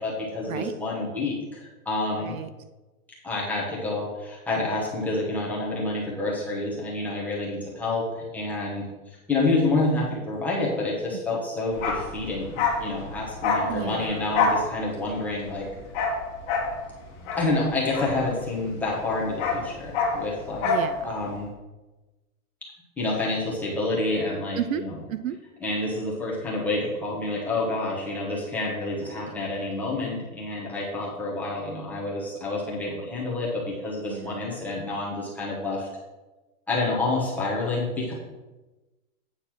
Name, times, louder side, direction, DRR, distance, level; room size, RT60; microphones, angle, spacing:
voice 1, 0.0-2.4 3.2-15.7 17.4-20.7 21.0-21.5 23.0-25.0 25.6-35.9 36.7-38.1, left 2 dB, 5° left, -5 dB, 1.0 m, -28 dB
voice 2, 2.2-2.5 11.3-11.4 13.7-14.4 20.6-21.1 24.6-24.8 25.1-25.4 29.0-29.3 34.1-34.4, right 10 dB, 65° right, 12 dB, 0.6 m, -33 dB
Bark, 11.7-18.7 19.0-20.9 21.2-21.3, left 4 dB, 35° left, 1.5 m, -27 dB
8.6 x 4.0 x 6.0 m, 1.1 s
supercardioid pair, 170°, 44 cm